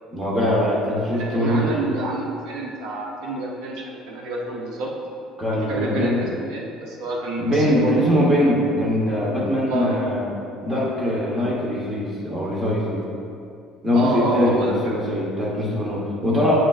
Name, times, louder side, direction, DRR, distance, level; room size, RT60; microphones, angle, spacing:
voice 1, 0.1-1.8 5.4-6.3 7.4-10.3 10.6-13.1 13.8-16.6, left 1 dB, 15° right, -4 dB, 1.1 m, -22 dB
voice 2, 1.1-4.9 5.5-8.1 9.7-10.1 13.9-15.0, right 2 dB, 65° right, -1 dB, 0.7 m, -28 dB
8.9 x 5.1 x 2.5 m, 2.5 s
cardioid pair, 175°, 0 cm